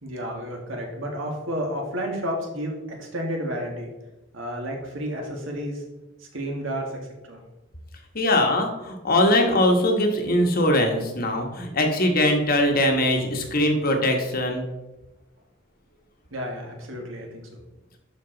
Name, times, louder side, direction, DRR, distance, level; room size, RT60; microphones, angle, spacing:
voice 1, 0.0-3.9 4.3-5.8 6.3-7.0 7.2-7.4 16.3-17.6, equal, 70° right, 1 dB, 1.9 m, -31 dB
voice 2, 8.1-14.6, left 1 dB, 45° left, 3 dB, 1.3 m, -21 dB
11.5 x 4.5 x 3.9 m, 1.0 s
head